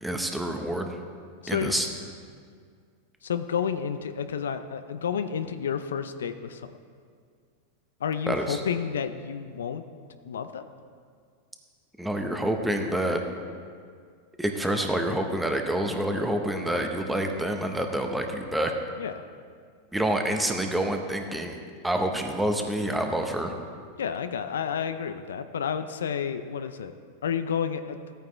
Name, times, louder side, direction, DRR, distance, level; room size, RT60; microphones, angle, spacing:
voice 1, 0.0-1.0 1.5-1.9 8.3-8.6 12.0-13.2 14.4-18.7 19.9-21.6 21.8-23.5, right 1 dB, 5° right, 4 dB, 1.0 m, -27 dB
voice 2, 1.4-1.9 3.2-6.7 8.0-9.8 10.2-10.6 19.0-19.1 24.0-26.9 27.2-28.0, left 7 dB, 85° left, 10 dB, 0.5 m, -30 dB
13.5 x 9.0 x 3.3 m, 2.1 s
hypercardioid pair, 110°, 0 cm